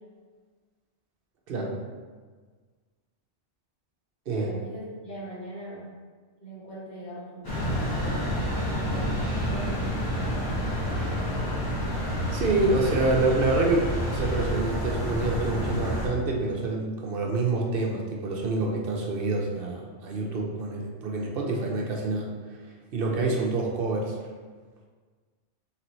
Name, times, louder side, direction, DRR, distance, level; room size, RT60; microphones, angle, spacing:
voice 1, 4.3-5.9 6.4-9.9, equal, 55° left, -10 dB, 1.8 m, -40 dB
sound 1, 7.4-16.1, equal, 20° left, 1.0 m, -29 dB
voice 2, 12.3-22.3 22.9-24.1, right 3 dB, 60° right, 0 dB, 0.8 m, -27 dB
4.0 x 3.3 x 3.1 m, 1.5 s
omnidirectional pair, 1.2 m